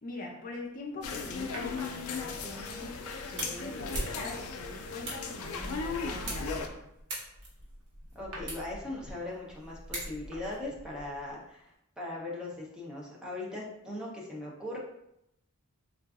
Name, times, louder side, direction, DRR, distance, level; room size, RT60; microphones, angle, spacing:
voice 1, 0.0-3.0 3.3-6.9, left 2 dB, 40° left, -2 dB, 0.7 m, -43 dB
sound 1, 1.0-6.7, left 4 dB, 80° left, 0.4 m, -37 dB
sound 2, 1.5-2.6 4.4-4.7 5.2-11.4 11.7-11.8, equal, 90° right, 0.8 m, -46 dB
sound 3, 2.7-10.5, right 1 dB, 55° right, 1.1 m, -43 dB
voice 2, 8.1-14.8, left 2 dB, 5° right, -4 dB, 0.7 m, -39 dB
3.9 x 2.4 x 2.4 m, 0.81 s
head